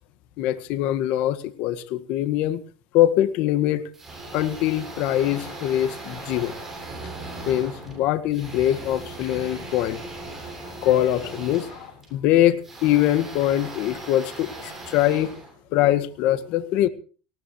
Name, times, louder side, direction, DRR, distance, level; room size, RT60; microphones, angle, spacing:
voice 1, 0.4-2.6 2.9-3.9 4.3-6.6 7.5-10.0 10.7-15.4 15.7-16.9, left 13 dB, 55° left, 12 dB, 1.7 m, -23 dB
sound 1, 3.9-16.1, right 2 dB, 10° right, 7.8 m, -39 dB
19.5 x 18.0 x 3.1 m, 0.38 s
supercardioid pair, 135°, 3 cm